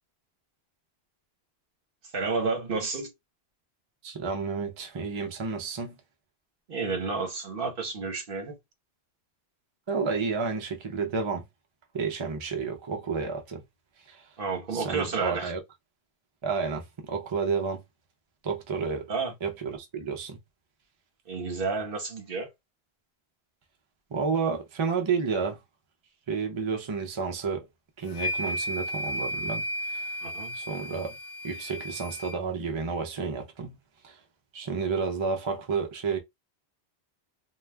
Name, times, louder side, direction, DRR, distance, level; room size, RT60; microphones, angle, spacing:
voice 1, 2.1-3.1 6.7-8.6 14.4-15.5 19.1-19.3 21.3-22.5 30.2-30.5, right 4 dB, 60° right, 1.0 m, -31 dB
voice 2, 4.0-6.0 9.9-11.4 11.9-13.6 14.1-14.2 14.7-15.6 16.4-17.8 18.4-19.1 19.4-20.4 24.1-25.6 26.3-27.7 28.0-30.1 30.5-31.1 31.4-33.7 34.0-34.2 34.5-36.2, right 5 dB, 40° right, 0.4 m, -31 dB
sound 1, 28.1-32.4, equal, 65° left, 0.9 m, -34 dB
2.3 x 2.3 x 3.2 m
omnidirectional pair, 1.1 m